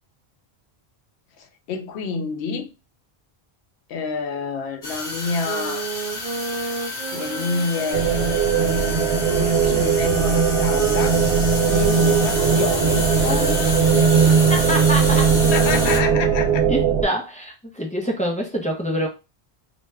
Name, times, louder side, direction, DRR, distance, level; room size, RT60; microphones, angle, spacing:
voice 1, 1.4-2.7 3.9-5.9 7.1-8.1 9.2-11.2 11.7-14.2 15.5-16.6, left 4 dB, 85° left, 0.9 m, -28 dB
sound 1, 4.8-16.0, left 1 dB, 50° left, 1.1 m, -29 dB
sound 2, 5.4-11.0 11.6-17.1, right 4 dB, 55° right, 0.4 m, -31 dB
sound 3, 7.9-17.0, right 6 dB, 80° right, 0.9 m, -19 dB
voice 2, 14.5-15.3 16.7-19.1, equal, 10° left, 0.4 m, -25 dB
2.7 x 2.2 x 3.2 m
omnidirectional pair, 1.1 m